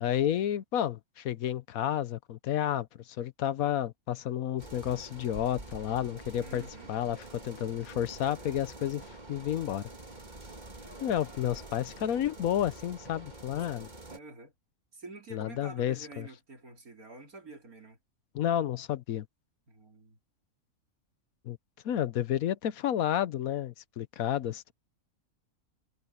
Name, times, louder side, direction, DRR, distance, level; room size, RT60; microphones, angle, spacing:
voice 1, 0.0-9.9 11.0-13.9 15.3-16.3 18.3-19.3 21.4-21.6 21.8-24.7, left 11 dB, 75° left, 1.2 m, -31 dB
sound 1, 4.6-14.2, right 2 dB, 30° right, 2.3 m, -47 dB
voice 2, 6.4-6.9 11.2-11.7 14.1-14.5 14.9-18.0 19.7-20.2, right 2 dB, 75° right, 4.1 m, -48 dB
omnidirectional pair, 1.5 m